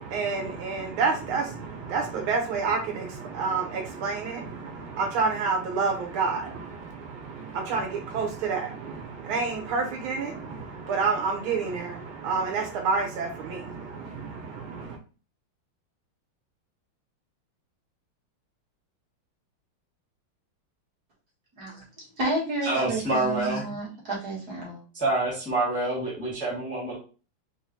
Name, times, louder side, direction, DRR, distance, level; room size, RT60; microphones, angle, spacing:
voice 1, 0.0-15.0, right 4 dB, 80° right, 3 dB, 1.6 m, -29 dB
voice 2, 21.6-24.8, right 2 dB, 50° right, -6 dB, 2.1 m, -31 dB
voice 3, 22.6-23.6 24.9-27.0, right 2 dB, 5° left, -4 dB, 1.2 m, -27 dB
4.6 x 2.4 x 2.8 m, 0.35 s
omnidirectional pair, 2.3 m